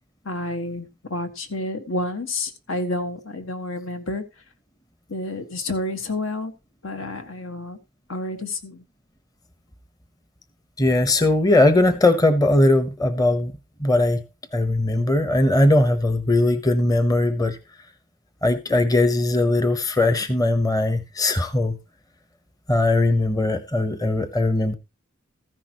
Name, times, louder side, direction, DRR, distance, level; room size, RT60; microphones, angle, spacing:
voice 1, 0.2-4.2 5.1-6.5 6.8-7.8 8.1-8.8, left 2 dB, 80° left, 1.6 m, -29 dB
voice 2, 10.8-13.5 13.8-14.2 14.5-17.6 18.4-21.8 22.7-24.7, left 2 dB, 20° left, 0.8 m, -19 dB
14.5 x 10.5 x 2.9 m
head